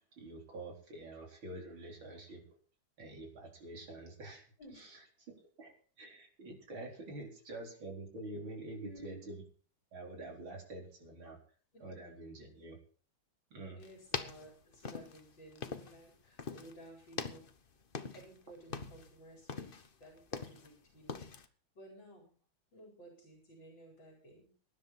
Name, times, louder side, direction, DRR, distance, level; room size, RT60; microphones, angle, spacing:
voice 1, 0.2-2.4 3.0-4.5 4.8-5.0 5.3-9.4 9.9-11.4 11.8-12.8 13.5-13.8 17.2-17.3, right 2 dB, 70° right, 1 dB, 5.0 m, -47 dB
voice 2, 8.7-9.2 11.7-11.9 13.8-17.5 18.1-21.5 21.8-22.4 22.7-24.5, right 1 dB, 60° left, 0 dB, 5.2 m, -55 dB
sound 1, 13.8-16.1 16.4-16.8 17.1-18.4 18.6-19.1 19.5-20.7 21.1-21.5, left 5 dB, 35° left, 0.9 m, -42 dB
20.0 x 10.5 x 4.3 m, 0.43 s
omnidirectional pair, 2.3 m